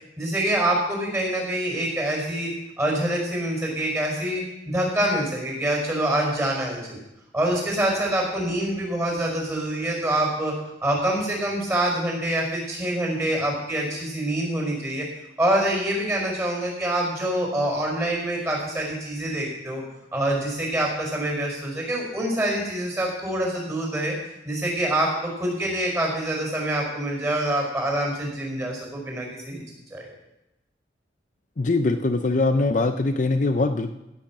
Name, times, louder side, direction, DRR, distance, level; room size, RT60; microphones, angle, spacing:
voice 1, 0.2-2.5 2.8-7.0 7.3-10.5 10.8-15.0 15.4-19.8 20.1-24.1 24.4-29.6 29.9-30.1, right 1 dB, 15° right, -1 dB, 5.3 m, -25 dB
voice 2, 31.6-33.9, left 2 dB, 45° left, 7 dB, 0.6 m, -22 dB
16.0 x 7.9 x 6.0 m, 0.93 s
head